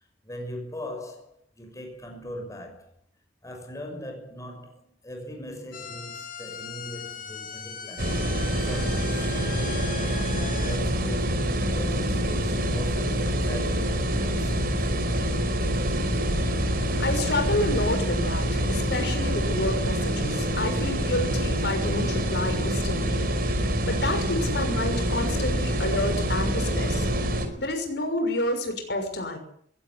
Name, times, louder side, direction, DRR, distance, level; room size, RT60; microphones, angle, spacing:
voice 1, 0.2-2.9 3.4-10.0 10.3-14.9, left 1 dB, 20° left, 6.3 m, -40 dB
sound 1, 5.7-10.8, left 7 dB, 50° left, 2.6 m, -39 dB
sound 2, 8.0-27.5, equal, 55° right, 5.0 m, -26 dB
voice 2, 17.0-23.3 23.6-27.1 27.6-29.4, left 1 dB, 65° left, 6.2 m, -29 dB
22.0 x 17.0 x 9.9 m
head